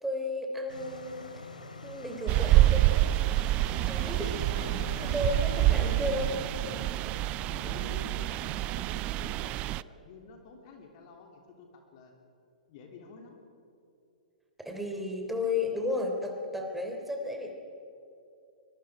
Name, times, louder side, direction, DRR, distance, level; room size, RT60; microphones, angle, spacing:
voice 1, 0.0-1.3 1.8-3.2 3.9-4.4 5.0-6.4 6.7-7.0 14.6-17.5, left 2 dB, 5° right, 2 dB, 3.4 m, -33 dB
snowmobile pass slow medium speed nice, 0.7-6.5, left 2 dB, 75° left, 2.6 m, -42 dB
sound 1, 2.3-9.8, right 16 dB, 30° right, 0.4 m, -27 dB
Wind instrument woodwind instrument, 4.8-9.2, equal, 90° right, 3.7 m, -48 dB
voice 2, 5.0-5.9 7.0-12.1 12.7-13.4, left 4 dB, 40° left, 2 dB, 3.1 m, -50 dB
24.0 x 22.5 x 4.9 m, 2.8 s
figure-of-eight pair, 110°, 4 cm